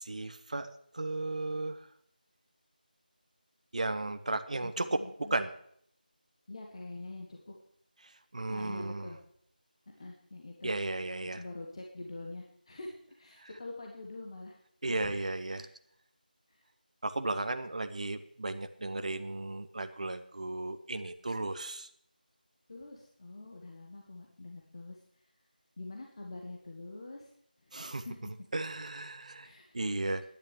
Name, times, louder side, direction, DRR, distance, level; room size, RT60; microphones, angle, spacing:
voice 1, 0.1-1.9 3.7-5.0 5.3-5.5 8.0-9.1 10.6-11.4 13.4-13.5 14.8-15.7 17.0-21.9 27.7-28.1 28.5-30.2, right 2 dB, 50° right, 9 dB, 0.9 m, -35 dB
voice 2, 4.6-5.4 6.5-7.5 8.5-9.2 10.0-10.7 11.3-14.6 14.8-15.1 15.5-15.7 16.5-16.6 22.7-25.0 25.8-27.3 27.7-28.3 29.4-29.8, left 2 dB, 35° left, 1 dB, 1.4 m, -45 dB
10.5 x 9.5 x 7.2 m, 0.67 s
figure-of-eight pair, 170°, 5 cm